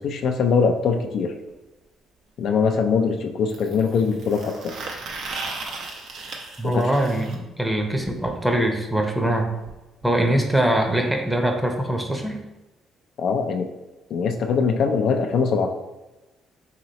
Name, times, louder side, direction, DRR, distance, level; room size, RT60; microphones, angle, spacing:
voice 1, 0.0-1.3 2.4-4.7 6.6-7.0 13.2-13.7 14.1-15.7, left 5 dB, 65° left, 4 dB, 0.4 m, -22 dB
sound 1, 1.5-1.6 3.5-7.3 9.3-9.4 9.7-9.8 10.0-10.1 11.1-11.2, right 3 dB, 70° right, 0.7 m, -36 dB
voice 2, 6.6-9.5 10.0-12.4, right 1 dB, 5° right, 3 dB, 0.7 m, -22 dB
3.0 x 2.9 x 4.0 m, 1.1 s
supercardioid pair, 75°, 0 cm